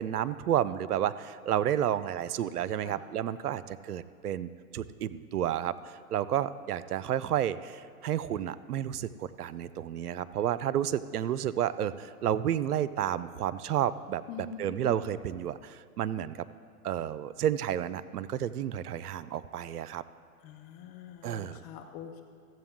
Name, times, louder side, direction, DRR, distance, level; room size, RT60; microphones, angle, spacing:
voice 1, 0.0-14.2 14.6-16.5 16.8-20.0 21.2-21.6, right 10 dB, 85° right, 15 dB, 0.5 m, -31 dB
voice 2, 14.3-14.9 20.4-22.2, left 7 dB, 20° left, 4 dB, 0.4 m, -44 dB
14.5 x 7.7 x 3.7 m, 2.1 s
hypercardioid pair, 115°, 45 cm